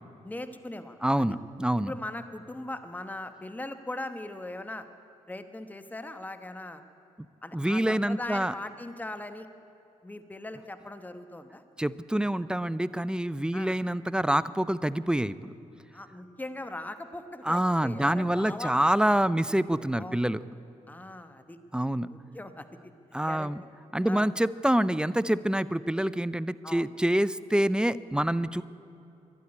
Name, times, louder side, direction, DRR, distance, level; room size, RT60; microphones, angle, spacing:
voice 1, 0.2-1.3 1.8-4.9 5.3-6.8 7.4-9.5 10.0-11.6 13.5-13.7 15.9-19.1 20.0-20.2 20.9-21.6 22.0-22.9 23.3-23.5 24.0-24.3 26.6-26.9, left 2 dB, 10° left, 9 dB, 1.0 m, -40 dB
voice 2, 1.0-1.9 7.5-8.5 11.8-15.5 17.4-20.4 21.7-22.1 23.1-23.6 23.9-28.6, right 1 dB, 5° right, 17 dB, 0.5 m, -26 dB
12.5 x 11.5 x 9.7 m, 2.7 s
supercardioid pair, 55°, 14 cm